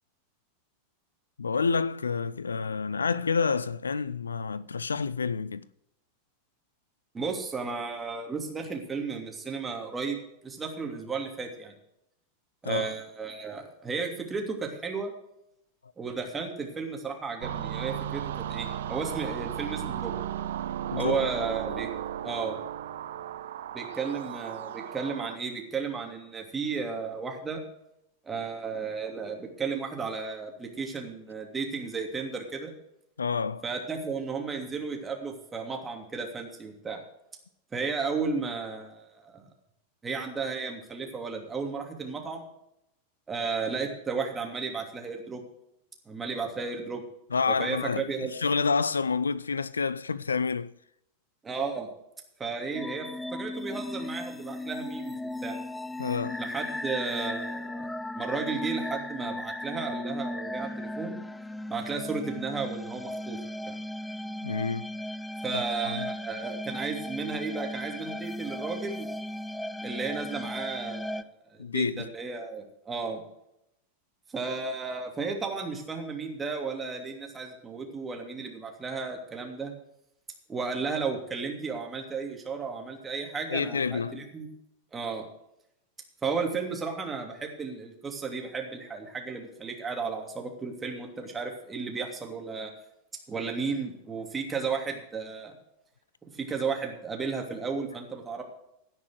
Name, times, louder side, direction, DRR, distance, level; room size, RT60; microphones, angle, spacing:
voice 1, 1.4-5.6 12.6-12.9 20.9-21.3 33.2-33.6 47.3-50.7 56.0-56.4 64.4-64.9 65.5-66.1 71.6-72.0 83.5-84.2, left 5 dB, 75° left, 0.4 m, -29 dB
voice 2, 7.1-11.7 12.6-15.1 16.0-18.2 18.5-20.1 20.9-21.9 22.2-22.6 23.7-27.6 28.2-32.7 33.6-37.0 37.7-39.5 40.0-42.5 43.3-45.4 46.1-47.0 47.5-48.3 51.4-51.9 52.4-53.1 53.3-55.6 56.4-61.2 61.7-63.4 63.7-63.8 65.4-69.1 69.8-73.2 74.3-79.7 80.5-84.5 84.9-85.3 86.2-92.7 93.3-95.5 96.3-98.4, right 4 dB, 15° right, 2.8 m, -34 dB
sound 1, 17.4-25.4, right 10 dB, 60° right, 0.7 m, -35 dB
sound 2, 52.7-71.2, left 1 dB, 5° left, 0.5 m, -36 dB
17.0 x 6.1 x 6.4 m
figure-of-eight pair, 90°, 0 cm